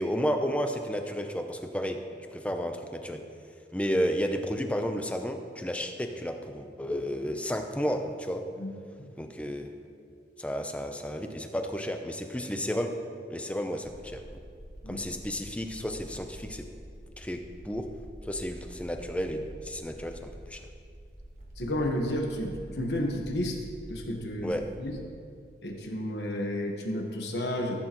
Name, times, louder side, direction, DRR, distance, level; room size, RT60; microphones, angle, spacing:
voice 1, 0.0-2.0 2.3-3.2 3.7-8.4 9.2-9.7 10.4-12.9 13.3-14.2 14.9-16.7 17.2-17.9 18.2-20.6 24.4-24.6, equal, 5° left, 5 dB, 0.5 m, -32 dB
sound 1, 13.8-25.1, right 1 dB, 40° right, 1.3 m, -47 dB
voice 2, 21.6-23.6 23.9-24.5 24.8-25.0 25.6-27.7, left 1 dB, 70° left, 2 dB, 1.3 m, -31 dB
14.5 x 8.5 x 3.0 m, 2.3 s
head